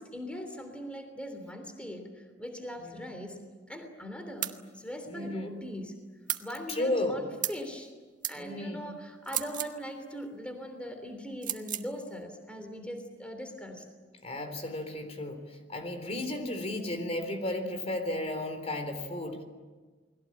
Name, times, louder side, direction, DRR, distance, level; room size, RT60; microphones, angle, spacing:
voice 1, 0.0-3.4 3.7-6.0 6.4-7.9 8.3-13.9, equal, 5° left, 5 dB, 3.3 m, -40 dB
sound 1, 4.4-4.6 6.3-6.5 7.4-7.6 8.2-8.4 9.2-9.8 11.4-11.9, right 11 dB, 45° right, 1.6 m, -33 dB
voice 2, 5.1-5.5 6.7-7.2 8.4-8.8 14.2-19.4, left 1 dB, 35° left, 7 dB, 3.7 m, -34 dB
29.5 x 21.5 x 8.6 m, 1.4 s
head